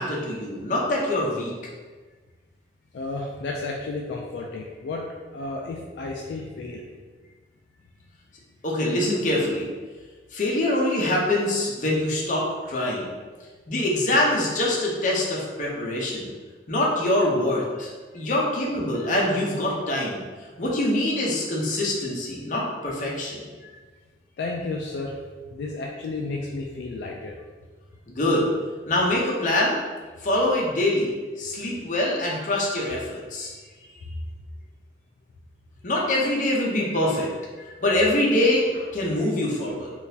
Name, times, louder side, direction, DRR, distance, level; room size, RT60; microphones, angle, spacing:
voice 1, 0.0-1.5 8.6-9.7 10.3-13.1 13.7-16.3 16.7-20.2 20.6-23.7 28.1-28.5 28.9-29.8 30.2-31.1 31.4-33.5 35.8-37.3 37.6-39.9, left 1 dB, 45° left, -3 dB, 0.7 m, -24 dB
voice 2, 2.9-6.9 24.4-25.2 25.5-27.4 33.8-34.2, left 3 dB, 70° left, -1 dB, 0.3 m, -32 dB
3.7 x 2.4 x 2.7 m, 1.4 s
head